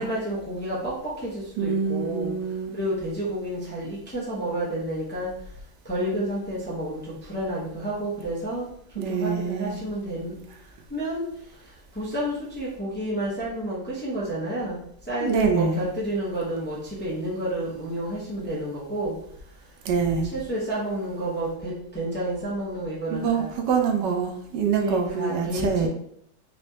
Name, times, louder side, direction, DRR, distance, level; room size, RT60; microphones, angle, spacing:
voice 1, 0.0-2.3 2.7-5.3 5.8-8.7 9.1-10.3 10.9-11.3 12.0-14.8 15.1-19.1 20.3-23.5 24.7-25.9, right 1 dB, 10° left, -6 dB, 0.6 m, -30 dB
voice 2, 1.6-2.8 9.0-9.8 15.2-15.8 19.8-20.3 23.1-25.9, right 6 dB, 85° right, 4 dB, 1.3 m, -25 dB
4.2 x 3.1 x 2.7 m, 0.70 s
omnidirectional pair, 1.9 m